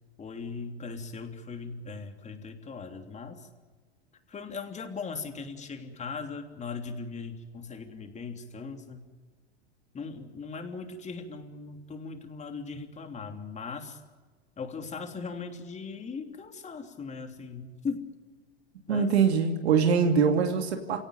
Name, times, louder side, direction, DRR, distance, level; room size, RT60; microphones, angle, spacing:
voice 1, 0.2-3.5 4.3-9.0 9.9-14.0 14.6-18.1 18.9-19.1, left 4 dB, 20° left, 5 dB, 3.2 m, -39 dB
voice 2, 18.9-21.0, right 6 dB, 80° right, 4 dB, 2.7 m, -23 dB
28.5 x 17.5 x 9.2 m, 1.4 s
hypercardioid pair, 110°, 32 cm